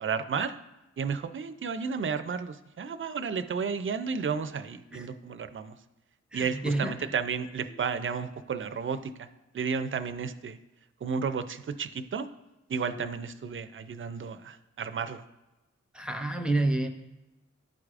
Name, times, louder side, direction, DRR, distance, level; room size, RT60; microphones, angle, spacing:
voice 1, 0.0-0.5 1.0-5.8 6.3-9.3 9.5-10.6 11.0-12.3 12.7-15.2, right 6 dB, 45° right, 11 dB, 0.4 m, -32 dB
voice 2, 6.3-7.0 7.7-7.8 12.9-13.1 15.9-16.9, right 2 dB, 5° right, 5 dB, 0.7 m, -29 dB
12.0 x 4.7 x 2.5 m, 1.0 s
wide cardioid pair, 95°, 30 cm